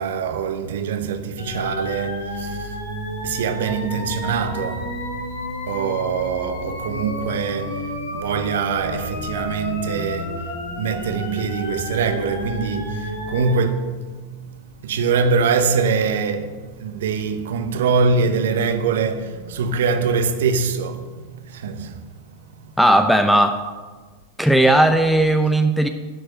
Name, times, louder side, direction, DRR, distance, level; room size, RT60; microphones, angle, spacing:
voice 1, 0.0-2.7 3.2-4.9 5.7-10.4 10.7-14.0 14.8-21.1 21.4-21.9, right 5 dB, 60° right, 1.0 m, -23 dB
sound 1, 1.4-13.6, left 1 dB, 65° left, 3.6 m, -31 dB
voice 2, 22.8-23.6 24.4-25.9, right 1 dB, ahead, 0.6 m, -16 dB
11.0 x 6.5 x 7.8 m
figure-of-eight pair, 90°, 0 cm